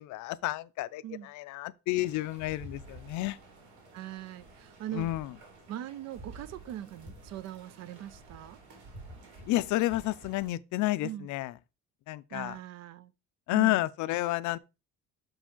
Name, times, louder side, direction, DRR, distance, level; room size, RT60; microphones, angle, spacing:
voice 1, 0.0-3.4 4.9-5.3 9.5-11.5 12.1-12.6 13.5-14.6, left 17 dB, 70° left, 0.5 m, -30 dB
sound 1, 1.9-10.5, right 2 dB, 80° right, 2.8 m, -50 dB
voice 2, 3.9-5.1 5.7-8.6 11.0-11.3 12.3-13.1 13.5-13.8, right 12 dB, 60° right, 0.6 m, -41 dB
6.5 x 4.9 x 3.7 m
cardioid pair, 160°, 31 cm